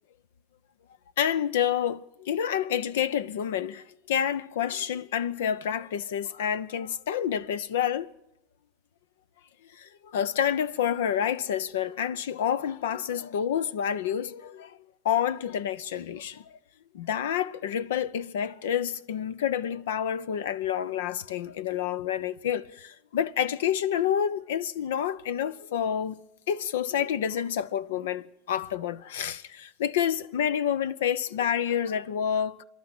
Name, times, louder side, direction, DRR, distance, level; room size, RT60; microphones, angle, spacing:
voice 1, 1.2-8.1 9.8-14.8 15.0-16.4 16.9-26.2 26.5-32.6, left 9 dB, 85° left, 0.7 m, -28 dB
26.0 x 11.5 x 8.9 m
supercardioid pair, 105°, 0 cm